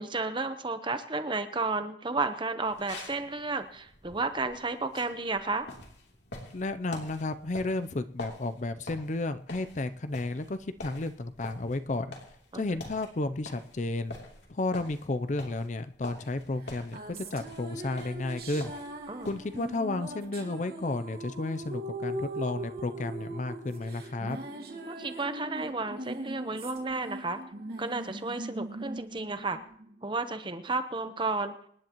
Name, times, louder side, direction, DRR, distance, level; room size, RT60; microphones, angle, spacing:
voice 1, 0.0-5.7 12.5-12.6 19.1-19.3 24.9-27.4 27.8-29.6 30.0-31.5, right 3 dB, 25° right, 9 dB, 0.9 m, -32 dB
sound 1, 2.6-19.8, left 2 dB, 70° left, 3.1 m, -47 dB
voice 2, 6.5-12.1 12.5-14.2 14.5-18.7 19.3-24.4, left 2 dB, 40° left, 11 dB, 0.5 m, -32 dB
sound 2, 16.6-30.3, right 1 dB, 55° right, 2.4 m, -40 dB
25.5 x 10.5 x 3.0 m, 0.65 s
head